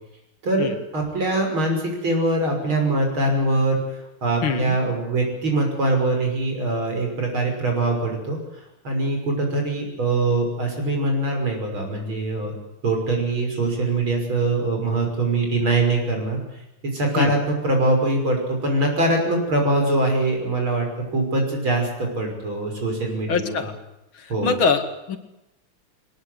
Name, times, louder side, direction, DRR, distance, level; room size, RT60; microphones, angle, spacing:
voice 1, 0.9-8.4 8.8-12.5 12.8-16.4 16.8-17.4 17.6-20.9 21.1-23.6 24.3-24.5, right 2 dB, 70° right, 2 dB, 6.9 m, -23 dB
voice 2, 4.4-4.8 17.2-17.3 23.3-23.7 24.1-25.2, left 5 dB, 70° left, 7 dB, 2.8 m, -23 dB
22.0 x 20.5 x 8.1 m, 0.92 s
omnidirectional pair, 2.3 m